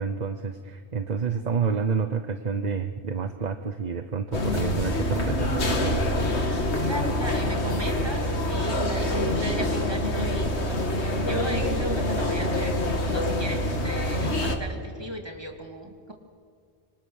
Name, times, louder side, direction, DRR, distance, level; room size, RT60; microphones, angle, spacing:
voice 1, 0.0-6.1, right 5 dB, 45° right, 8 dB, 1.0 m, -29 dB
sound 1, 4.3-14.6, left 1 dB, 90° left, 2.2 m, -26 dB
voice 2, 6.8-16.1, right 1 dB, 25° right, 2 dB, 2.7 m, -37 dB
26.0 x 25.5 x 6.5 m, 2.3 s
omnidirectional pair, 1.1 m